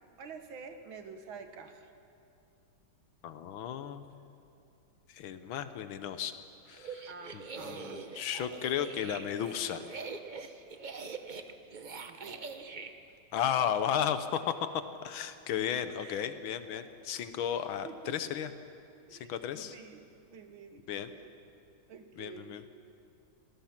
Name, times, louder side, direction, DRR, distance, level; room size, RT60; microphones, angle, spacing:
voice 1, 0.2-1.9 7.1-8.1 11.4-11.5 12.1-12.9 16.0-16.3 17.8-18.3 19.1-21.3 21.9-22.7, right 5 dB, 75° right, 7 dB, 2.1 m, -49 dB
voice 2, 3.2-4.1 5.1-6.3 6.7-7.0 7.3-9.9 13.3-14.7 15.0-18.5 19.1-19.8 20.9-21.1 22.2-22.6, left 9 dB, 80° left, 10 dB, 1.7 m, -34 dB
sound 1, 6.7-12.9, right 4 dB, 50° right, 0.5 m, -43 dB
26.5 x 18.5 x 5.9 m, 2.6 s
omnidirectional pair, 2.2 m